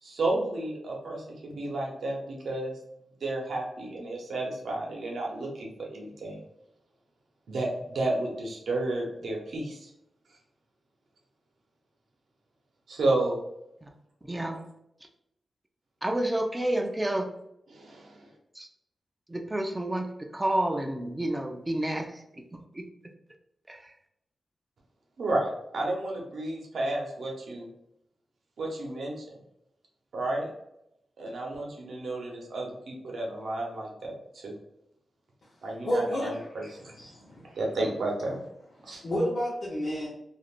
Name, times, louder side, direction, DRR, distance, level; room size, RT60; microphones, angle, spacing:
voice 1, 0.0-2.8 3.2-6.4 7.5-9.9 12.9-13.4 17.7-18.3 25.2-27.7 28.6-29.1 30.1-30.5 31.2-34.5 35.6-36.9 37.6-38.4 38.8-39.0, right 2 dB, 85° right, -1 dB, 0.7 m, -32 dB
voice 2, 14.2-14.6 16.0-17.3 18.5-18.7 19.3-22.9 23.7-23.9, right 1 dB, 15° right, 4 dB, 0.4 m, -30 dB
voice 3, 35.8-37.5 39.0-40.1, equal, 55° left, -8 dB, 0.8 m, -31 dB
3.3 x 2.4 x 2.4 m, 0.80 s
wide cardioid pair, 140°, 0 cm